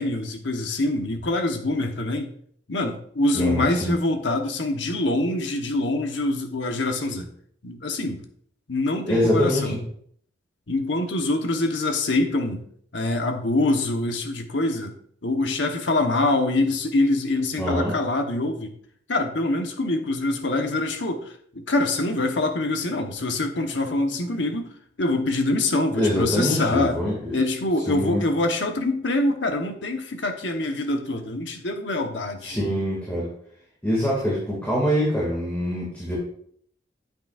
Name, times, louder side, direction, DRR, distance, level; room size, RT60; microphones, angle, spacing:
voice 1, 0.0-2.3 2.7-7.3 7.6-8.2 8.7-9.8 10.7-12.6 12.9-15.0 15.2-18.7 19.1-24.7 25.0-27.0 27.3-32.6, left 2 dB, 70° left, 5 dB, 1.1 m, -25 dB
voice 2, 3.3-3.9 9.1-9.8 17.6-17.9 26.0-27.4 27.9-28.2 32.4-33.3 33.8-36.2, equal, 10° left, -6 dB, 2.1 m, -24 dB
9.1 x 8.0 x 2.5 m, 0.63 s
head